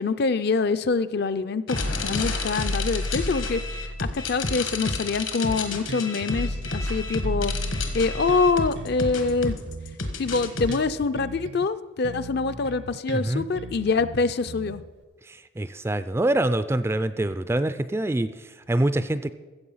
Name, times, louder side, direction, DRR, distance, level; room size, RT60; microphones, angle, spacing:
voice 1, 0.0-3.6 4.1-7.5 7.9-9.6 10.2-14.8, left 4 dB, 50° left, 13 dB, 0.5 m, -25 dB
sound 1, 1.7-10.8, left 2 dB, 70° left, 1.4 m, -29 dB
Bass guitar, 5.4-6.9 7.2-11.7 12.0-15.0, right 3 dB, 60° right, 0.6 m, -40 dB
voice 2, 13.1-13.5 15.3-19.3, right 1 dB, 10° right, 13 dB, 0.3 m, -25 dB
14.5 x 7.5 x 5.6 m, 1.3 s
head